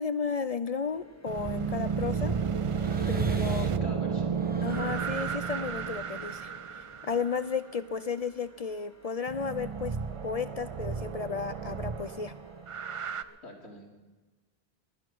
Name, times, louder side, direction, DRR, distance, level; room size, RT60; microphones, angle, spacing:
voice 1, 0.0-2.3 3.1-3.7 4.6-6.5 6.8-10.0 10.2-12.3, left 5 dB, 50° left, 13 dB, 0.5 m, -33 dB
sound 1, 0.8-13.4, left 1 dB, 15° left, 1.4 m, -58 dB
sound 2, 1.3-7.3 9.3-13.2, right 6 dB, 45° right, 0.4 m, -32 dB
sound 3, 2.7-3.9 4.2-7.3, right 1 dB, 10° right, 1.0 m, -51 dB
voice 2, 3.8-4.3 13.1-13.9, equal, 90° left, -1 dB, 3.5 m, -46 dB
19.5 x 11.0 x 6.2 m, 1.2 s
omnidirectional pair, 1.1 m